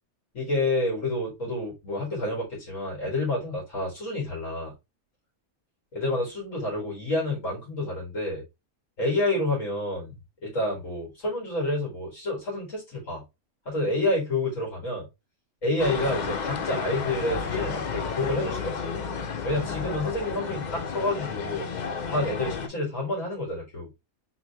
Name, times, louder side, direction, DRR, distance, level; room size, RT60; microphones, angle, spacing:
voice 1, 0.3-4.7 5.9-8.4 9.0-10.2 10.4-13.2 13.7-15.0 15.6-18.8 19.4-21.7 22.1-23.9, left 2 dB, 60° left, -3 dB, 2.1 m, -29 dB
sound 1, 15.8-22.7, left 5 dB, 75° left, 0.4 m, -32 dB
3.9 x 2.7 x 3.3 m, 0.24 s
omnidirectional pair, 1.5 m